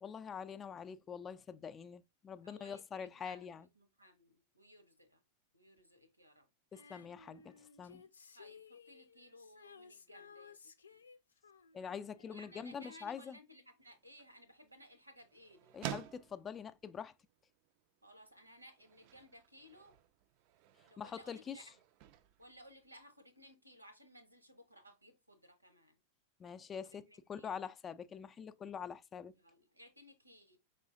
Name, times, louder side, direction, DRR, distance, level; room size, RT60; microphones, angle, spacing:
voice 1, 0.0-3.6 6.7-8.0 11.7-13.4 15.7-17.1 21.0-21.6 26.4-27.0 27.3-29.3, left 7 dB, 20° left, 0.4 m, -45 dB
voice 2, 2.4-5.2 5.5-6.5 8.3-11.0 12.3-15.8 18.0-20.0 20.8-21.7 22.4-26.0 26.8-27.6 29.4-30.6, equal, 85° right, 1.0 m, -59 dB
Female singing, 6.7-13.3 13.6-13.7, left 6 dB, 75° left, 0.5 m, -59 dB
sound 1, 13.8-23.6, right 11 dB, 45° right, 0.4 m, -52 dB
5.3 x 3.7 x 2.6 m
figure-of-eight pair, 90°, 0 cm